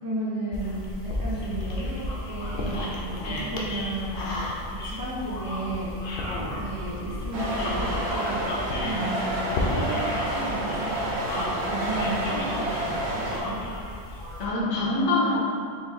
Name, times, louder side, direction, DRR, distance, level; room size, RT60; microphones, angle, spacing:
voice 1, 0.0-4.4 4.7-6.0 6.4-11.0 11.4-13.6, right 2 dB, 15° right, -10 dB, 1.1 m, -33 dB
sound 1, 0.5-14.5, left 1 dB, 55° left, 0.7 m, -33 dB
sound 2, 7.3-13.4, right 1 dB, 85° right, 1.3 m, -29 dB
voice 2, 14.4-15.4, left 2 dB, 85° left, -4 dB, 1.2 m, -26 dB
4.4 x 2.6 x 3.8 m, 2.4 s
omnidirectional pair, 1.4 m